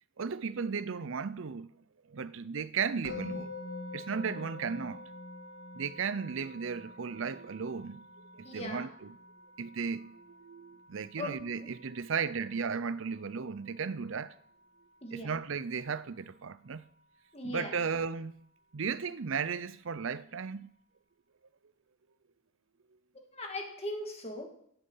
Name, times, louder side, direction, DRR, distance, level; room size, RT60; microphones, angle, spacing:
voice 1, 0.2-1.7 2.1-3.5 3.9-5.0 5.7-8.0 8.3-9.1 9.6-14.3 15.1-16.8 17.4-18.4 18.7-20.7, right 5 dB, 60° right, 0.5 m, -35 dB
Musical instrument, 3.0-14.2, left 2 dB, 65° left, 2.8 m, -47 dB
voice 2, 8.4-8.9 11.2-11.7 15.0-15.3 17.3-17.8 23.3-24.5, left 1 dB, 30° left, 2.1 m, -39 dB
15.0 x 8.0 x 5.6 m
head